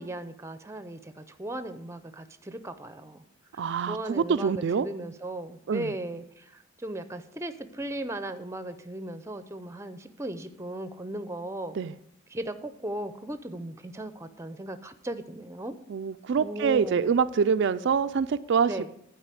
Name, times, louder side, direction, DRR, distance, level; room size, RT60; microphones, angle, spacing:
voice 1, 0.0-3.2 3.9-6.5 6.8-11.8 12.3-15.8 16.4-17.1 18.7-18.9, right 1 dB, 15° right, 11 dB, 0.6 m, -37 dB
voice 2, 3.6-4.9 5.7-5.9 11.7-11.9 15.9-18.9, right 6 dB, 60° right, 10 dB, 0.4 m, -25 dB
11.0 x 4.9 x 8.3 m, 0.75 s
head